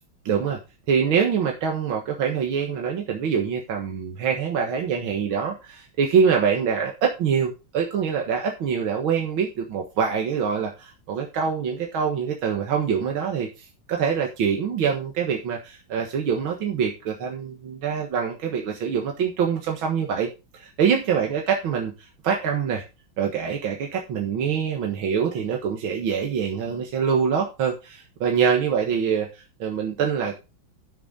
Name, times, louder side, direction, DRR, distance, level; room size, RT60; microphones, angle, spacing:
voice 1, 0.3-0.6 0.9-22.8 23.2-30.3, right 7 dB, 90° right, 1 dB, 2.3 m, -25 dB
11.0 x 6.9 x 3.9 m, 0.28 s
omnidirectional pair, 2.1 m